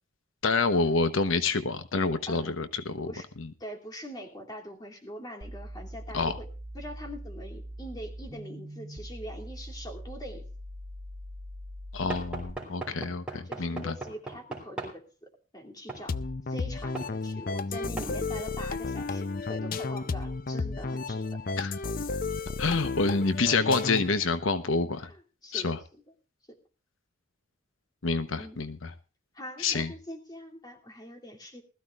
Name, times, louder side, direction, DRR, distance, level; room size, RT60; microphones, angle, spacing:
voice 1, 0.4-3.1 3.4-3.5 6.1-6.3 11.9-13.9 21.6-21.7 22.6-25.1 25.5-25.8 28.0-28.9 29.6-29.9, left 3 dB, 80° left, 11 dB, 1.0 m, -27 dB
voice 2, 2.3-2.6 3.0-3.3 3.6-6.5 6.7-10.5 12.9-13.1 13.4-16.1 16.5-21.2 25.0-26.0 28.4-28.6 29.3-31.6, equal, 20° left, 1 dB, 2.7 m, -43 dB
sound 1, 5.4-12.5, equal, 70° right, 2.2 m, -42 dB
Knock / Wood, 12.1-15.0 15.9-16.1 17.0-17.1 18.0-18.2, right 3 dB, 5° right, 3.5 m, -38 dB
sound 2, 16.1-24.2, left 3 dB, 45° left, 0.5 m, -32 dB
20.5 x 14.0 x 2.4 m, 0.33 s
head